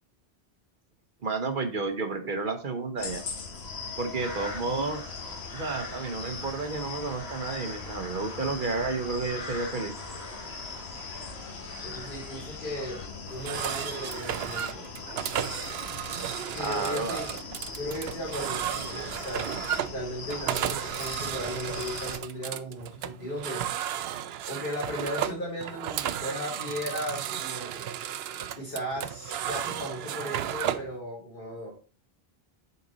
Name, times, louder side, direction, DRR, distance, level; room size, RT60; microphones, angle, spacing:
voice 1, 1.2-3.2 4.0-5.0 5.5-9.9 16.6-17.3, right 3 dB, 55° right, 7 dB, 1.1 m, -31 dB
sound 1, 3.0-22.2, left 4 dB, 85° left, 1.3 m, -40 dB
sound 2, 4.2-13.1, left 1 dB, 40° left, 1.7 m, -44 dB
voice 2, 11.8-14.8 16.5-17.3 17.8-24.0 24.4-27.8 28.3-31.7, equal, 55° left, -7 dB, 2.7 m, -36 dB
sound 3, 13.3-30.9, right 10 dB, 75° right, 0.8 m, -34 dB
6.9 x 4.3 x 3.9 m, 0.37 s
omnidirectional pair, 1.0 m